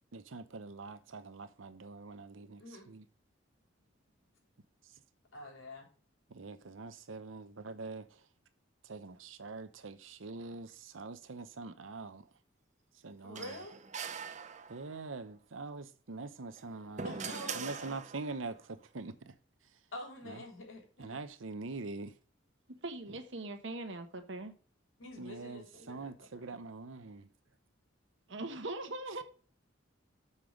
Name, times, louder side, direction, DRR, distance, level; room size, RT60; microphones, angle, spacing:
voice 1, 0.1-3.0 6.3-8.2 8.8-12.3 13.0-13.6 14.7-19.3 20.3-20.4 21.0-22.1 25.2-27.3, right 3 dB, 85° right, 0.8 m, -44 dB
voice 2, 5.3-5.9 13.2-13.8 17.0-17.9 19.9-21.2 25.0-26.1 26.3-26.4, left 1 dB, 90° left, 3.3 m, -46 dB
sound 1, 13.4-15.1 16.4-18.5, right 6 dB, 40° right, 0.7 m, -42 dB
voice 3, 22.8-24.5 28.3-29.2, right 2 dB, 65° right, 1.3 m, -41 dB
6.9 x 5.5 x 6.2 m
head